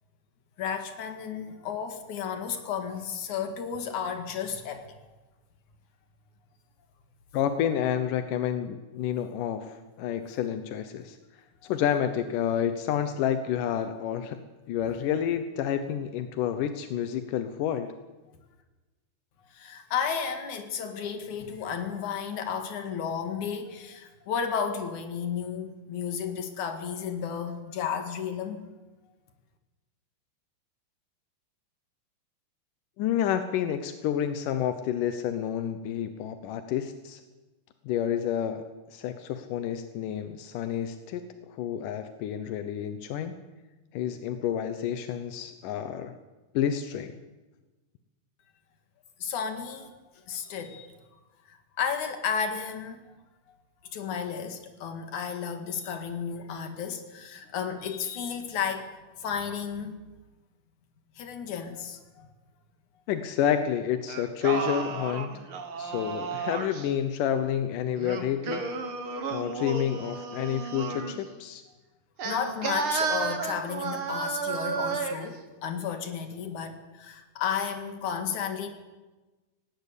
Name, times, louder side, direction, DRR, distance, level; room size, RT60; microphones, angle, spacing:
voice 1, 0.6-4.9 11.6-11.7 19.5-28.6 49.2-49.9 50.3-50.9 51.5-53.0 53.5-53.6 53.9-58.9 59.2-60.0 61.2-62.3 72.2-78.7, left 7 dB, 70° left, 7 dB, 3.3 m, -33 dB
voice 2, 7.3-11.2 11.6-14.4 14.7-17.9 33.0-37.2 37.9-38.6 38.9-43.4 43.9-46.1 46.5-47.1 63.1-65.4 65.8-68.7 69.3-71.6, left 9 dB, 90° left, 9 dB, 2.6 m, -29 dB
Singing, 64.1-66.9 68.0-71.2 72.2-75.3, right 5 dB, 45° right, 2.4 m, -32 dB
18.5 x 18.0 x 8.4 m, 1.2 s
omnidirectional pair, 3.6 m